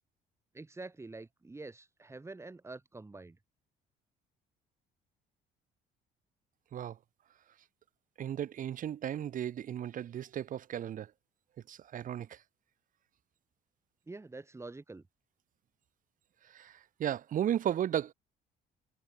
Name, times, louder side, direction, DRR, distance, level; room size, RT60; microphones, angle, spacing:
voice 1, 0.5-3.4 14.1-15.0, right 3 dB, 15° right, 7.9 m, -46 dB
voice 2, 8.2-11.1 11.7-12.4 16.5-18.1, right 10 dB, 50° right, 1.5 m, -35 dB
cardioid pair, 110°, 17 cm